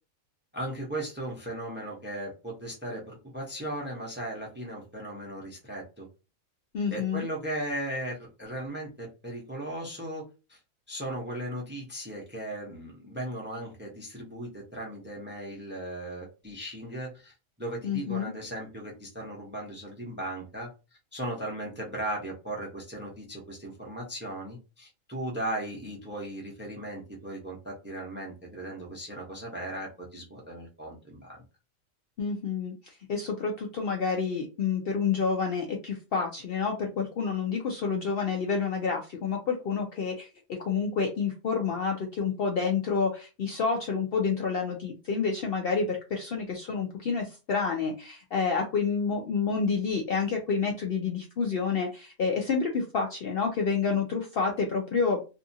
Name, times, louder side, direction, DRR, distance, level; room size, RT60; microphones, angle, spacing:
voice 1, 0.5-6.1 6.9-10.6 10.9-20.7 21.1-31.4, right 1 dB, 10° right, -1 dB, 0.6 m, -37 dB
voice 2, 6.7-7.3 17.8-18.3 32.2-32.7 33.1-55.2, left 5 dB, 65° left, 1 dB, 0.6 m, -29 dB
2.7 x 2.4 x 2.6 m, 0.30 s
omnidirectional pair, 1.4 m